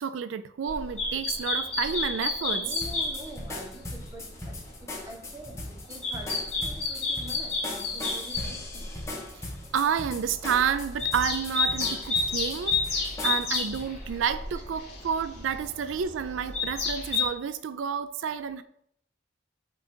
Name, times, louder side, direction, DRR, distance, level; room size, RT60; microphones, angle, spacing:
voice 1, 0.0-2.7 9.7-12.8 13.2-18.6, right 7 dB, 80° right, 0.4 m, -30 dB
sound 1, 0.7-3.6 4.0-4.6 5.1-9.1 9.5-9.7 10.2-17.3, left 4 dB, 35° left, 3.1 m, -31 dB
voice 2, 2.6-8.9 18.2-18.3, right 1 dB, 15° right, 1.2 m, -46 dB
sound 2, 2.8-13.9, left 2 dB, 15° left, 1.2 m, -39 dB
8.8 x 3.7 x 4.4 m
head